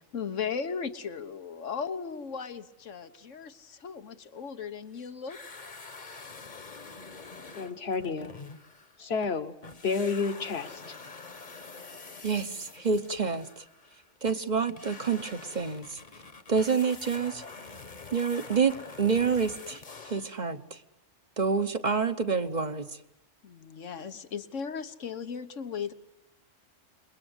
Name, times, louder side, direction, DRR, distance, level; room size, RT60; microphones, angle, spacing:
voice 1, 0.0-5.4 23.4-25.9, left 6 dB, 85° left, 11 dB, 1.6 m, -37 dB
sound 1, 5.3-9.4 9.6-20.4, left 4 dB, 40° left, 1.3 m, -46 dB
voice 2, 7.6-8.4 9.0-9.5 9.8-10.8, left 5 dB, 55° left, 12 dB, 1.5 m, -30 dB
voice 3, 12.2-13.6 14.2-16.0 16.5-17.4 18.1-20.8 21.4-23.0, right 5 dB, 40° right, 10 dB, 1.2 m, -28 dB
28.0 x 22.0 x 8.1 m, 0.85 s
omnidirectional pair, 1.2 m